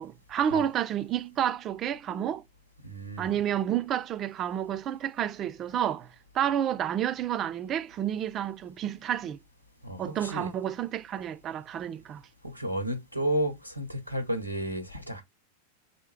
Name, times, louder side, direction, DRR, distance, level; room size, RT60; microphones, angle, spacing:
voice 1, 0.0-2.4 3.2-6.1 6.3-9.4 10.0-12.2, right 10 dB, 30° right, 0.3 m, -30 dB
voice 2, 2.8-3.4 9.8-10.5 12.4-15.2, right 1 dB, 90° left, 0.9 m, -32 dB
3.3 x 2.8 x 4.3 m
figure-of-eight pair, 90°, 0 cm